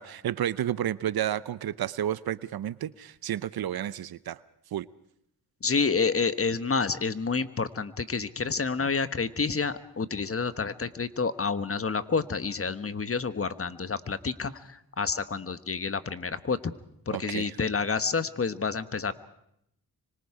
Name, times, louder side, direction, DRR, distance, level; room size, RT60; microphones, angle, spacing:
voice 1, 0.0-4.4 4.7-4.9 17.1-17.6, right 11 dB, 70° right, 17 dB, 0.8 m, -31 dB
voice 2, 5.6-16.7 17.1-19.1, left 5 dB, 35° left, 11 dB, 1.3 m, -29 dB
26.0 x 25.0 x 4.9 m, 0.76 s
cardioid pair, 60°, 38 cm